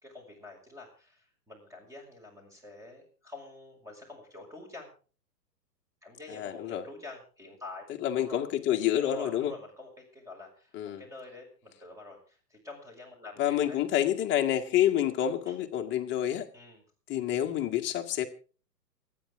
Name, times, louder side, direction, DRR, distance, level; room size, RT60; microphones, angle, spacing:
voice 1, 0.0-4.9 6.0-7.8 8.1-8.4 9.0-13.8 15.5-15.6 16.5-16.8, left 2 dB, 5° right, 3 dB, 6.0 m, -47 dB
voice 2, 6.3-6.8 8.0-9.5 10.7-11.0 13.4-16.5 17.1-18.3, left 11 dB, 25° left, 5 dB, 1.8 m, -28 dB
28.5 x 9.9 x 3.7 m, 0.38 s
figure-of-eight pair, 120°, 49 cm